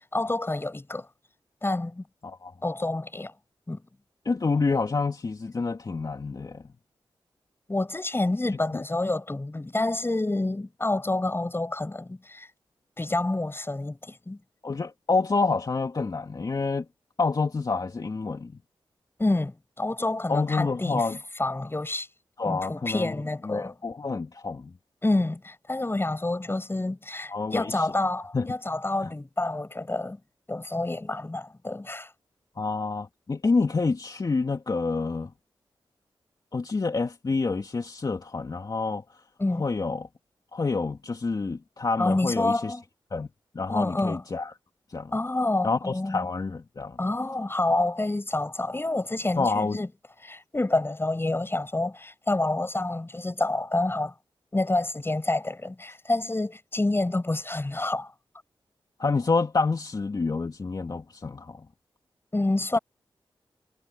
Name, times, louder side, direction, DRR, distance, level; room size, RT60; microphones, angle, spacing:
voice 1, 0.1-1.1 1.6-2.0 2.6-3.3 3.7-3.8 7.7-12.5 13.0-14.4 19.2-21.0 21.4-22.1 22.4-23.8 25.0-30.2 30.5-32.1 39.4-39.6 42.0-42.8 43.7-44.2 45.1-46.3 47.0-49.9 50.2-54.1 54.5-58.1 62.3-62.8, left 2 dB, 25° left, 7.4 m, -28 dB
voice 2, 4.2-6.7 8.7-8.8 14.6-16.9 17.2-18.6 20.3-21.2 22.4-23.1 23.4-24.7 27.3-27.9 28.3-28.5 29.0-29.1 32.6-35.3 36.5-39.0 39.6-40.1 40.5-42.8 43.1-43.3 43.5-44.5 44.9-45.1 45.6-47.0 49.4-49.8 59.0-61.7, left 4 dB, 45° left, 2.9 m, -28 dB
cardioid pair, 60°, 9 cm